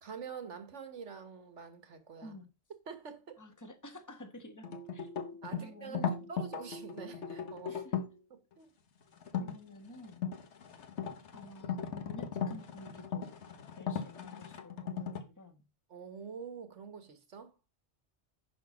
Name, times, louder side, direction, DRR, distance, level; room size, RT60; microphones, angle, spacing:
voice 1, 0.0-2.3 2.9-3.4 5.4-6.0 6.3-7.8 8.3-8.7 9.3-9.4 15.9-17.5, right 6 dB, 85° right, 1.7 m, -46 dB
voice 2, 3.4-5.1 5.5-6.3 7.7-8.0 9.4-10.3 11.3-13.4 13.8-15.6, left 1 dB, 15° left, 1.4 m, -51 dB
sound 1, 4.6-8.2 9.2-9.5 10.0-15.2, left 7 dB, 75° left, 1.4 m, -38 dB
10.5 x 3.9 x 6.2 m
omnidirectional pair, 1.2 m